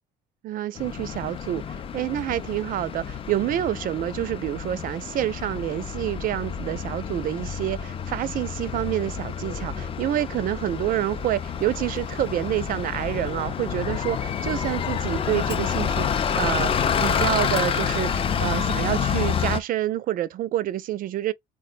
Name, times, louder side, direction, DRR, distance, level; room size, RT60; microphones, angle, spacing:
voice 1, 0.4-16.1 16.3-21.3, right 13 dB, 55° right, 0.4 m, -28 dB
Bus, 0.8-19.6, left 7 dB, 35° left, 0.4 m, -28 dB
3.5 x 2.1 x 2.5 m
cardioid pair, 110°, 17 cm